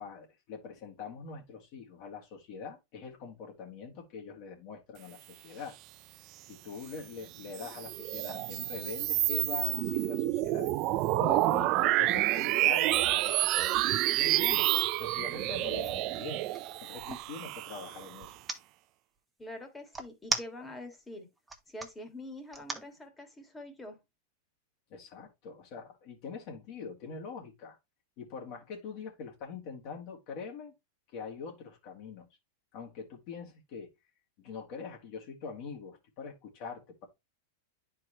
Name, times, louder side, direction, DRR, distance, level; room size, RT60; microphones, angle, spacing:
voice 1, 0.0-5.8 6.5-10.7 11.2-14.7 15.0-16.5 16.8-18.4 24.9-27.8 28.2-30.7 31.1-32.3 32.7-33.9 34.4-37.1, left 5 dB, 50° left, 2.1 m, -43 dB
sound 1, 7.4-18.3, right 16 dB, 45° right, 0.4 m, -29 dB
sound 2, 15.9-17.3 18.2-18.6 19.9-20.9 21.4-21.9 22.5-22.9, right 2 dB, 10° right, 1.1 m, -36 dB
voice 2, 19.4-21.3 21.7-24.0, left 1 dB, 10° left, 1.7 m, -45 dB
9.8 x 4.6 x 3.0 m
hypercardioid pair, 130°, 0 cm